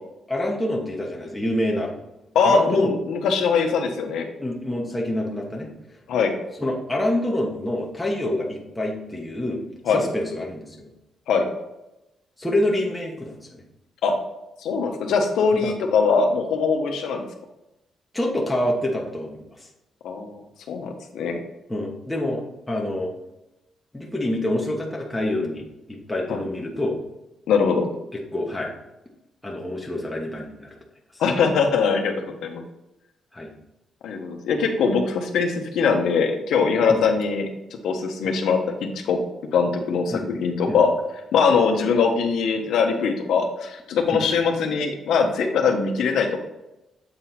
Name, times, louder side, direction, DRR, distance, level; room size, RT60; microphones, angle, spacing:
voice 1, 0.3-1.9 2.4-2.9 4.4-5.7 6.6-9.6 9.9-10.9 12.4-13.6 15.5-15.7 18.1-19.4 21.7-23.1 23.9-26.9 28.3-28.7 29.4-30.7 33.3-33.5 36.9-37.0 40.1-40.3 40.7-40.8 44.1-44.2, left 1 dB, 10° left, -2 dB, 1.2 m, -26 dB
voice 2, 2.3-4.3 6.1-6.3 9.9-10.0 11.3-11.5 14.0-14.1 14.6-17.3 20.0-21.4 26.3-26.4 27.5-27.9 31.2-32.1 32.4-32.6 34.0-37.5 37.8-38.6 39.0-39.2 39.5-40.9 41.3-46.4, left 5 dB, 85° left, 4 dB, 1.1 m, -21 dB
7.7 x 4.2 x 4.2 m, 0.93 s
cardioid pair, 130°, 0 cm